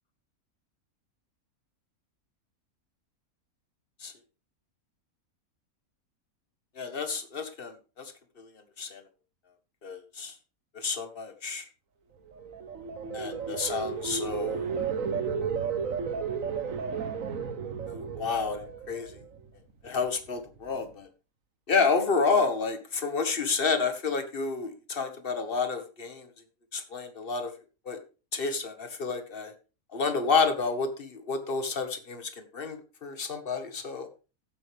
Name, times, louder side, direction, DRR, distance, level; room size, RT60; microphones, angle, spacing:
voice 1, 6.8-8.1 8.4-8.5 8.8-9.0 9.8-10.3 10.7-11.7 13.1-14.7 17.9-19.2 19.8-21.1 21.7-26.3 26.7-27.5 27.8-28.0 28.3-29.5 29.9-34.1, left 4 dB, 40° left, 7 dB, 1.8 m, -30 dB
sound 1, 12.3-19.5 19.9-20.3, right 6 dB, 60° right, 1.6 m, -33 dB
15.5 x 8.2 x 3.5 m, 0.33 s
omnidirectional pair, 1.6 m